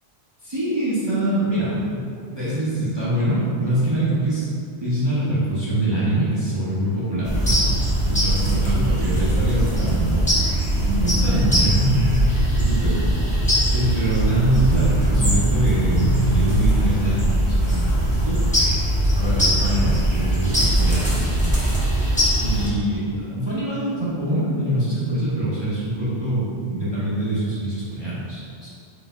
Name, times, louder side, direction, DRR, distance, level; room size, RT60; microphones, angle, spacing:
voice 1, 0.4-2.0 2.3-4.5 4.8-10.3 10.6-13.1 13.7-18.5 19.2-21.6 22.4-28.7, right 1 dB, 25° right, -11 dB, 0.8 m, -24 dB
sound 1, 7.2-22.7, right 1 dB, 10° left, 0.8 m, -20 dB
3.9 x 3.3 x 3.6 m, 2.4 s
omnidirectional pair, 1.1 m